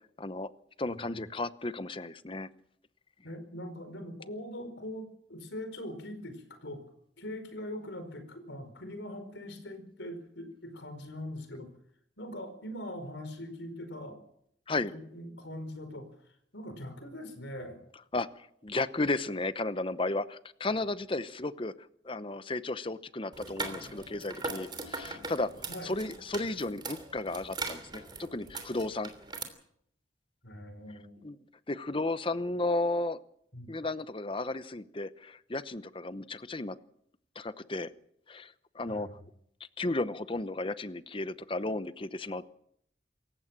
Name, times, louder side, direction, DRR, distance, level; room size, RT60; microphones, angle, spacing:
voice 1, 0.2-0.5 0.8-2.5 14.7-14.9 18.1-21.7 22.0-25.5 25.8-29.1 31.2-31.4 31.7-33.2 33.7-36.8 37.4-37.9 38.3-39.1 39.8-42.4, left 2 dB, 30° left, 14 dB, 0.9 m, -34 dB
voice 2, 0.8-1.3 3.2-6.8 7.2-11.7 12.2-14.2 14.9-16.1 16.5-17.8 25.7-25.9 30.4-31.2 33.5-33.7 38.9-39.2, left 1 dB, 75° left, 8 dB, 4.8 m, -42 dB
sound 1, 23.3-29.4, right 3 dB, 25° right, 3.0 m, -40 dB
27.0 x 15.5 x 7.5 m, 0.72 s
head